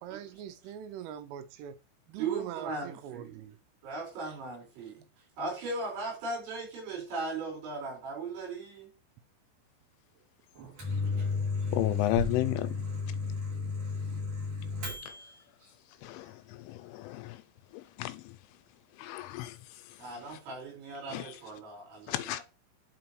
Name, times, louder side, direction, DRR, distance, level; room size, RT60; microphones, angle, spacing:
voice 1, 0.0-1.8 2.1-3.6 4.3-4.4, right 9 dB, 85° right, 3.3 m, -43 dB
voice 2, 2.2-3.3 3.8-5.0 5.4-8.9 20.0-22.4, right 3 dB, 65° right, 7.0 m, -38 dB
Microwave oven, 10.5-15.4, left 4 dB, 45° right, 3.8 m, -33 dB
voice 3, 11.7-12.7 16.0-17.4 17.7-18.3 19.0-19.6 20.3-20.4 21.1-21.3 22.1-22.4, left 17 dB, 85° left, 2.9 m, -33 dB
11.0 x 5.1 x 3.1 m
omnidirectional pair, 5.7 m